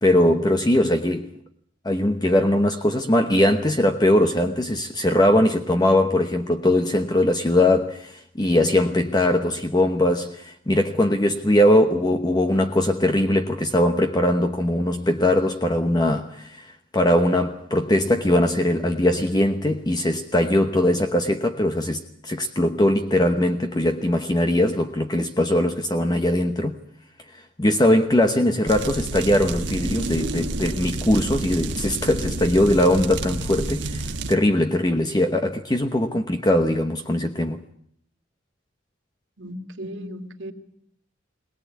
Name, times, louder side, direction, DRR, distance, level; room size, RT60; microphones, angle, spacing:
voice 1, 0.0-1.4 1.8-26.8 27.3-37.6, left 1 dB, 20° left, 1.0 m, -21 dB
sound 1, 28.7-34.3, right 2 dB, 70° right, 1.5 m, -29 dB
voice 2, 39.4-40.5, equal, 85° right, 2.6 m, -36 dB
22.0 x 19.5 x 8.4 m
head